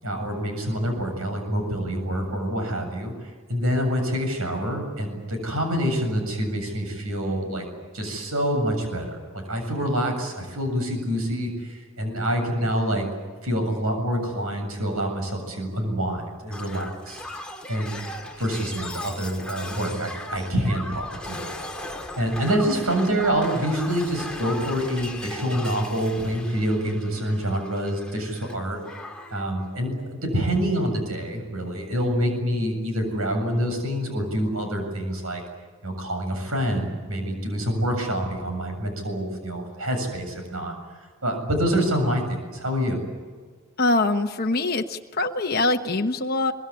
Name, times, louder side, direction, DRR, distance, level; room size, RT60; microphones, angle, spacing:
voice 1, 0.0-7.6 7.9-13.1 13.4-17.2 17.7-18.0 18.4-21.5 22.2-28.8 29.3-35.4 35.8-40.7 41.2-43.0, equal, 75° right, 5 dB, 7.6 m, -26 dB
Shatter, 16.5-28.6 28.8-29.4 30.5-30.6, left 2 dB, 5° left, 2.4 m, -38 dB
voice 2, 43.8-46.5, left 2 dB, 45° left, 3 dB, 1.1 m, -23 dB
23.5 x 22.0 x 9.9 m, 1.5 s
head